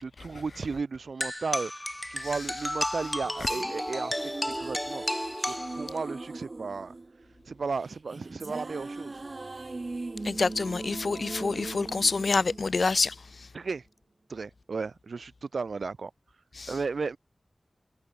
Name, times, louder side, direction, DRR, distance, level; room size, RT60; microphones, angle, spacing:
voice 1, 0.0-1.7 2.1-4.1 4.5-5.0 5.5-6.9 7.5-9.2 13.5-13.8 14.3-16.1 16.7-17.2, right 4 dB, 90° right, 1.8 m, -34 dB
sound 1, 1.2-6.2, left 1 dB, 10° left, 0.6 m, -33 dB
sound 2, 2.9-13.3, right 2 dB, 45° right, 1.9 m, -40 dB
voice 2, 10.2-13.1 16.6-16.7, left 4 dB, 70° left, 0.3 m, -27 dB
wide cardioid pair, 75°, 0 cm